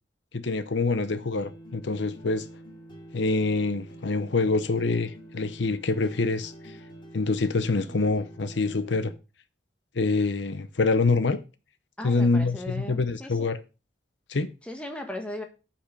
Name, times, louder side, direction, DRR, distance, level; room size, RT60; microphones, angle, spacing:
voice 1, 0.3-2.5 3.1-6.8 7.1-9.1 9.9-11.4 12.0-13.6 14.3-14.5, left 3 dB, 70° left, 0.7 m, -26 dB
sound 1, 1.1-9.1, right 1 dB, 25° left, 2.7 m, -46 dB
voice 2, 12.0-13.5 14.6-15.4, left 1 dB, 5° left, 1.6 m, -37 dB
8.3 x 5.8 x 6.8 m
head